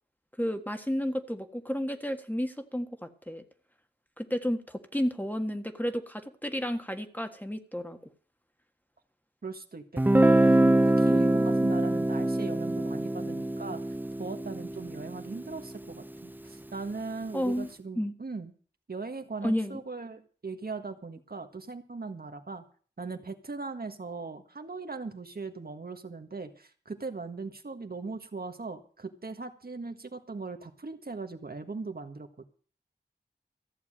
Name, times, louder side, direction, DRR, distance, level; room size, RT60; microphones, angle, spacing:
voice 1, 0.4-3.4 4.2-8.0 17.3-17.7 18.0-18.1 19.4-19.8, equal, 10° left, 7 dB, 1.6 m, -32 dB
voice 2, 9.4-10.6 10.8-13.8 14.2-18.5 18.9-22.6 23.0-32.4, right 4 dB, 60° right, 6 dB, 1.6 m, -39 dB
Guitar, 10.0-15.7, right 1 dB, 10° right, 0.6 m, -24 dB
14.5 x 7.1 x 8.7 m, 0.42 s
wide cardioid pair, 50°, 18 cm